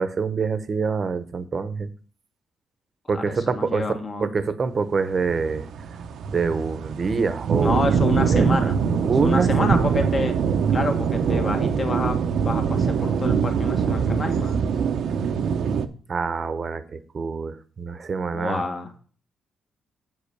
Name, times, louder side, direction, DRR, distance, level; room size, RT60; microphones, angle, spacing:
voice 1, 0.0-1.9 3.1-3.9 4.2-5.7 6.3-8.0 8.3-8.7 9.0-9.9 16.1-18.6, right 5 dB, 40° right, 12 dB, 0.9 m, -26 dB
voice 2, 3.1-4.3 7.6-8.8 9.2-10.4 10.7-14.6 18.3-18.9, left 3 dB, 35° left, 5 dB, 1.6 m, -28 dB
sound 1, 5.2-15.9, right 6 dB, 70° right, 0.7 m, -23 dB
7.8 x 5.2 x 6.6 m, 0.42 s
cardioid pair, 90°, 0 cm